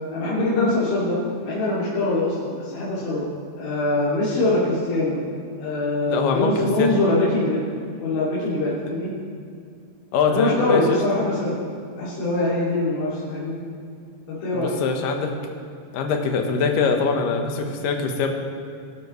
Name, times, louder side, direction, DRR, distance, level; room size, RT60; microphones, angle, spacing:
voice 1, 0.1-1.2 1.4-3.3 3.6-5.2 5.6-7.6 8.0-9.1 10.3-11.6 12.0-13.6 14.3-14.7, left 2 dB, 80° left, -11 dB, 5.2 m, -23 dB
voice 2, 6.1-6.9 10.1-11.0 14.5-15.3 15.9-18.3, left 5 dB, 65° left, 3 dB, 2.3 m, -23 dB
23.0 x 12.5 x 3.2 m, 2.3 s
omnidirectional pair, 5.3 m